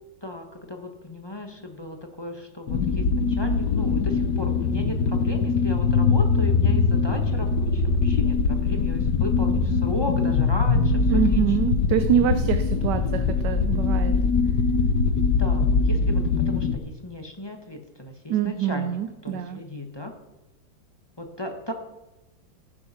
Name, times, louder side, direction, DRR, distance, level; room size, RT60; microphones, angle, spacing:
voice 1, 0.2-11.4 15.4-18.9 19.2-20.1 21.2-21.7, left 1 dB, 15° left, 4 dB, 1.2 m, -35 dB
sound 1, 2.7-16.8, left 4 dB, 65° left, 1.4 m, -22 dB
voice 2, 11.1-14.2 14.5-14.6 18.3-19.6, right 10 dB, 70° right, 10 dB, 1.2 m, -25 dB
15.0 x 9.5 x 5.8 m, 0.99 s
omnidirectional pair, 2.1 m